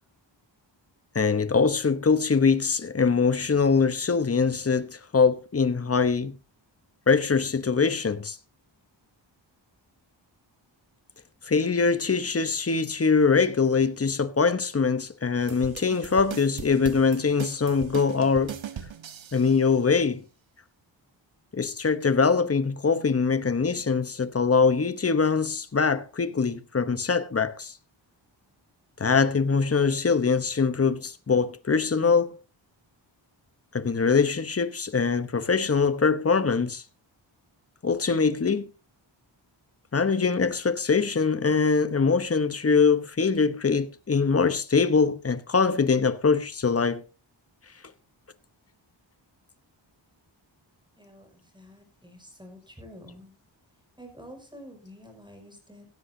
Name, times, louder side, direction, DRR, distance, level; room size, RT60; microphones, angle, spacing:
voice 1, 1.1-6.4 7.1-8.4 11.5-18.6 19.3-20.2 21.5-27.7 29.0-32.4 33.7-36.8 37.8-38.7 39.9-47.0, left 5 dB, 30° left, 1.0 m, -23 dB
sound 1, 15.4-19.6, right 8 dB, 85° right, 1.3 m, -39 dB
voice 2, 51.0-53.3 54.0-55.9, equal, 10° right, 5.8 m, -48 dB
16.0 x 16.0 x 2.7 m
wide cardioid pair, 100°, 45 cm